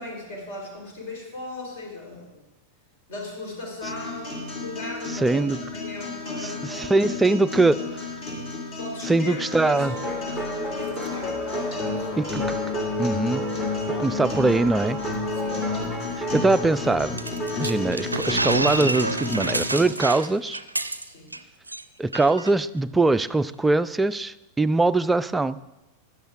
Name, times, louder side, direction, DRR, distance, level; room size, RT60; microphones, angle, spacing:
voice 1, 0.0-2.4 3.1-7.2 7.8-7.9 8.8-12.2 15.3-15.7 21.0-21.4, left 2 dB, 50° left, 0 dB, 3.3 m, -38 dB
sound 1, 3.8-19.8, left 4 dB, 35° left, 2.5 m, -33 dB
voice 2, 5.2-5.6 6.4-7.8 9.1-9.9 12.2-12.6 13.0-13.4 14.0-15.0 16.3-17.2 17.5-20.6 22.0-25.7, right 2 dB, 10° right, 13 dB, 0.3 m, -22 dB
sound 2, 9.8-19.0, equal, 15° left, 1.2 m, -32 dB
sound 3, 17.2-21.4 21.7-21.8 22.1-22.5, right 2 dB, 85° right, 0.4 m, -28 dB
15.5 x 11.0 x 2.4 m, 0.98 s
figure-of-eight pair, 90°, 0 cm